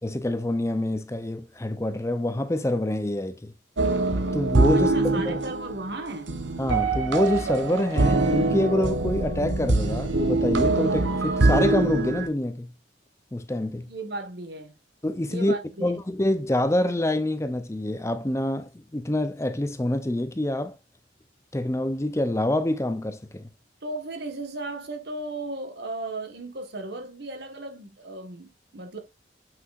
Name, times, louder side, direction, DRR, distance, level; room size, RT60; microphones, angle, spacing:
voice 1, 0.0-3.5 4.3-5.4 6.6-12.7 13.3-13.9 15.0-15.5 15.8-20.8 21.5-23.5, left 1 dB, 15° left, 0.6 m, -26 dB
sound 1, 3.8-12.3, right 2 dB, 85° right, 1.2 m, -24 dB
voice 2, 4.7-6.3 13.9-14.7 15.3-15.9 23.8-29.0, right 2 dB, 60° right, 1.6 m, -35 dB
8.5 x 5.9 x 2.5 m
head